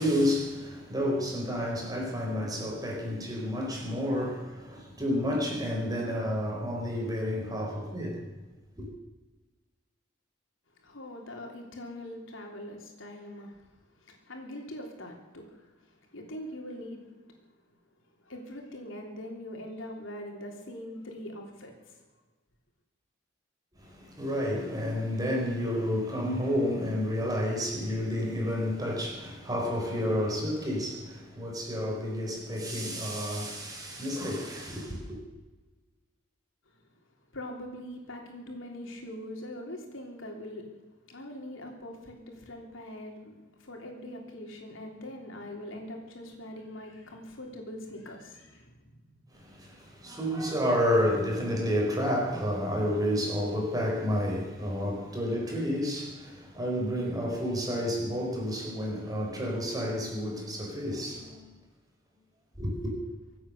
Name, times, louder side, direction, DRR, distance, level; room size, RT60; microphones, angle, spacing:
voice 1, 0.0-8.2 8.8-8.9 23.8-35.2 49.3-61.5 62.6-62.9, equal, 20° right, 4.4 m, -30 dB
voice 2, 10.8-17.1 18.2-22.0 37.3-40.7 41.1-49.1, left 1 dB, 85° left, 3.4 m, -42 dB
24.5 x 8.8 x 6.7 m
head